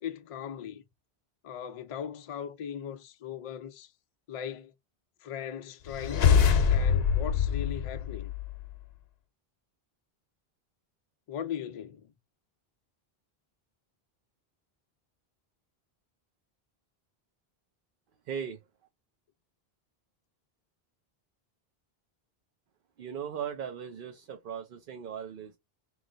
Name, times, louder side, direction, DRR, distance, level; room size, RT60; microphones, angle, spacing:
voice 1, 0.0-0.8 1.4-3.9 4.3-4.7 5.2-8.3 11.3-12.1, left 8 dB, 55° left, 0.4 m, -39 dB
sound 1, 5.9-8.7, left 7 dB, 75° left, 0.9 m, -24 dB
voice 2, 18.3-18.6 23.0-25.6, right 8 dB, 65° right, 0.8 m, -38 dB
3.1 x 2.4 x 3.8 m
omnidirectional pair, 1.0 m